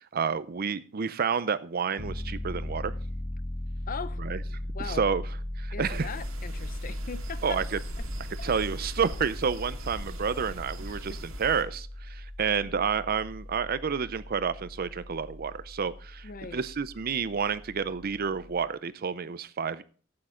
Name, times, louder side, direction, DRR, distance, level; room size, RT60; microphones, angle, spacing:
voice 1, 0.0-2.9 4.2-4.4 4.9-5.2 5.6-6.1 7.4-7.6 8.4-19.8, right 6 dB, 50° right, 0.5 m, -30 dB
Piano, 2.0-18.7, left 1 dB, 25° left, 1.2 m, -38 dB
voice 2, 3.9-4.2 4.6-5.0 5.7-7.6 8.0-8.1 8.4-8.5 9.9-10.0 11.1-11.2 12.6-12.9 16.2-16.6, left 5 dB, 45° left, 0.6 m, -40 dB
sound 1, 5.9-11.6, right 1 dB, 90° right, 2.0 m, -42 dB
12.5 x 8.6 x 3.7 m
head